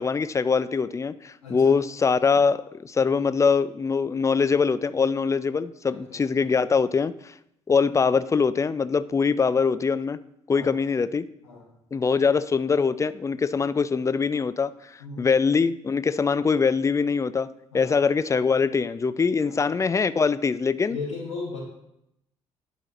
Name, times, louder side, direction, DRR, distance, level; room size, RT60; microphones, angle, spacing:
voice 1, 0.0-7.1 7.7-10.2 10.5-11.3 11.9-14.7 15.2-17.5 17.7-21.0, left 5 dB, 20° left, 15 dB, 0.4 m, -23 dB
voice 2, 1.4-1.7 5.9-6.2 10.5-10.7 11.4-11.6 15.0-15.3 17.7-17.9 19.4-19.6 20.9-21.6, left 3 dB, 80° left, -6 dB, 1.3 m, -36 dB
11.0 x 4.7 x 3.0 m, 0.80 s
figure-of-eight pair, 45°, 15 cm